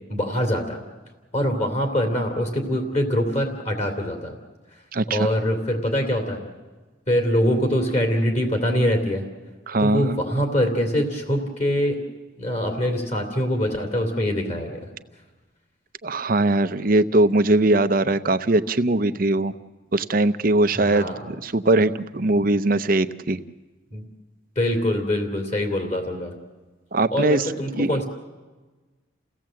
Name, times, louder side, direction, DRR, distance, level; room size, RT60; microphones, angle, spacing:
voice 1, 0.1-0.8 1.3-4.3 5.1-6.5 7.1-9.3 9.8-12.0 12.4-14.9 20.7-21.3 23.9-24.1 24.5-26.4 27.1-28.0, equal, 35° left, 3 dB, 2.9 m, -24 dB
voice 2, 9.7-10.0 16.0-19.5 19.9-23.4 26.9-27.5 27.8-27.9, right 2 dB, 45° right, 12 dB, 0.7 m, -20 dB
29.5 x 17.0 x 7.7 m, 1.3 s
head